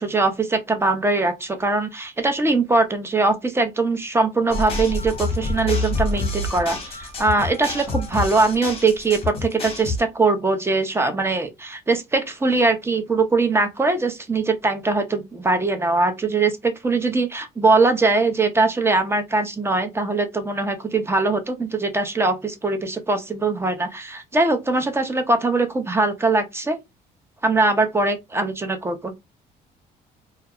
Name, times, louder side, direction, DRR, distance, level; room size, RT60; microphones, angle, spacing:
voice 1, 0.0-26.8 27.4-29.1, right 3 dB, 15° right, 0.5 m, -21 dB
sound 1, 4.5-10.0, left 2 dB, 35° left, 0.9 m, -27 dB
2.4 x 2.0 x 2.7 m
cardioid pair, 110°, 17 cm